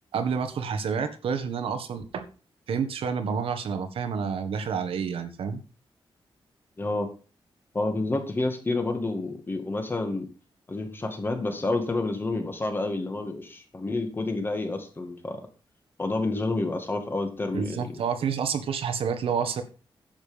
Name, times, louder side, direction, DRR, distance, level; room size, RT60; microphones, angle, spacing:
voice 1, 0.1-2.3 2.7-5.6 17.5-19.6, right 6 dB, 85° right, 8 dB, 1.6 m, -29 dB
voice 2, 6.8-7.1 7.7-10.3 10.7-15.4 16.0-17.9, left 2 dB, 25° left, 5 dB, 2.1 m, -29 dB
10.5 x 7.6 x 5.2 m, 0.36 s
wide cardioid pair, 155°, 9 cm